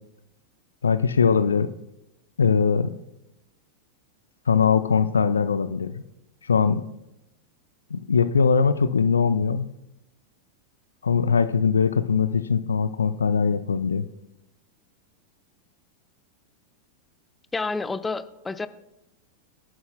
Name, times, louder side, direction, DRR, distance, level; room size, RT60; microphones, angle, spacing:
voice 1, 0.8-1.7 2.4-2.9 4.5-6.0 6.5-6.8 7.9-9.7 11.0-14.0, left 6 dB, 70° left, 13 dB, 0.5 m, -21 dB
voice 2, 17.5-18.7, left 3 dB, 10° left, 12 dB, 0.6 m, -29 dB
23.5 x 11.0 x 2.2 m, 0.91 s
figure-of-eight pair, 90°, 0 cm